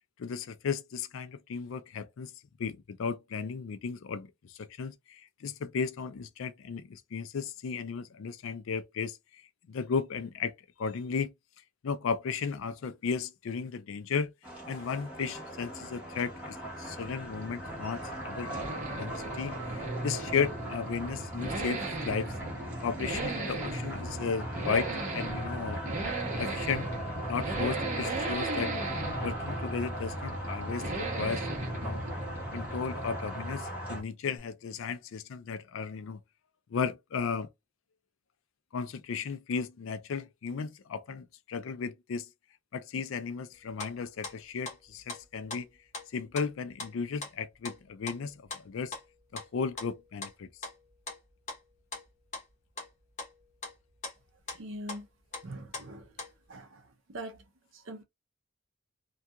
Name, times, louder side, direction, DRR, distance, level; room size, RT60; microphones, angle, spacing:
voice 1, 0.2-2.3 2.6-4.3 4.8-9.2 9.7-11.3 11.8-14.3 14.7-22.3 22.8-25.8 26.4-26.9 27.3-28.8 29.2-31.4 31.8-32.0 32.5-36.2 36.7-37.5 38.7-42.3 42.7-45.7 46.1-48.9 49.3-50.5, left 5 dB, 70° left, 0.4 m, -35 dB
sound 1, 14.4-34.0, right 1 dB, 5° right, 0.9 m, -39 dB
sound 2, 15.9-33.9, right 2 dB, 35° right, 0.8 m, -37 dB
sound 3, 43.8-44.4 44.6-45.2 45.5-45.6 45.9-46.1 46.3-46.5 46.8-46.9 47.2-47.3 47.6-47.8 48.1-48.6 48.9-50.3 50.6-51.2 51.5-51.6 51.9-52.5 52.8-52.9 53.2-54.2 54.5-54.6 54.9-55.0 55.3-55.9 56.2-56.3, left 3 dB, 35° left, 0.8 m, -41 dB
voice 2, 54.5-55.1 55.4-56.0 56.5-56.8 57.1-57.4 57.7-58.0, right 1 dB, 65° right, 0.6 m, -42 dB
2.3 x 2.3 x 2.7 m
head